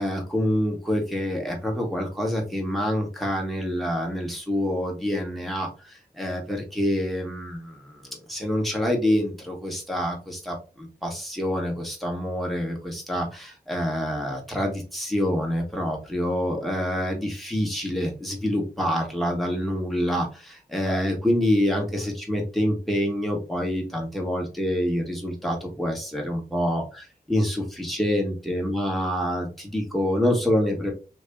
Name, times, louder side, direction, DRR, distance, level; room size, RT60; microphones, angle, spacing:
voice 1, 0.0-30.9, equal, ahead, 0 dB, 1.6 m, -26 dB
3.1 x 2.9 x 3.5 m, 0.33 s
cardioid pair, 60°, 16 cm